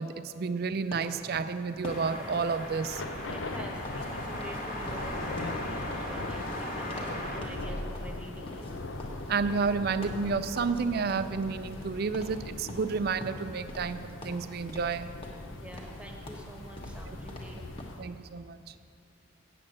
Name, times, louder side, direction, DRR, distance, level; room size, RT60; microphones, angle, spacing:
voice 1, 0.0-3.0 9.3-15.1 17.1-17.2 18.0-18.7, right 5 dB, 50° right, 12 dB, 0.4 m, -31 dB
sound 1, 0.9-4.1 4.3-4.6 4.9-7.2 7.4-7.7 7.9-10.8 11.1-11.9 12.1-12.4 12.7-14.0 14.2-15.0 15.2-18.0, left 1 dB, 30° left, 1.2 m, -45 dB
Thunder / Rain, 1.8-18.1, left 2 dB, 80° left, 0.7 m, -41 dB
sound 2, 1.8-7.4, left 1 dB, 45° left, 1.5 m, -38 dB
voice 2, 3.3-8.8 15.5-17.7, right 1 dB, 5° right, 1 dB, 1.1 m, -47 dB
8.7 x 7.7 x 7.5 m, 2.4 s
head